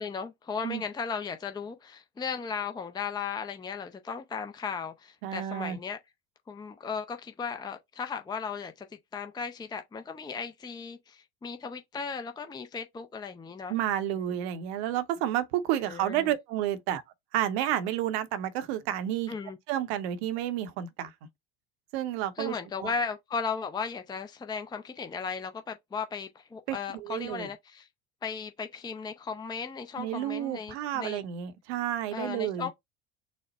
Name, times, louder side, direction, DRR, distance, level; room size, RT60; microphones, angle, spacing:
voice 1, 0.0-6.0 6.5-8.9 9.1-13.8 14.3-14.4 15.8-16.3 19.3-19.6 22.4-27.9 28.2-31.2 32.1-32.7, left 5 dB, 10° left, 0.5 m, -36 dB
voice 2, 5.2-5.8 13.7-17.0 17.3-19.3 19.7-21.1 21.9-22.5 22.8-22.9 26.7-27.5 30.0-32.7, right 11 dB, 70° right, 0.8 m, -30 dB
4.1 x 2.1 x 4.0 m
hypercardioid pair, 70°, 33 cm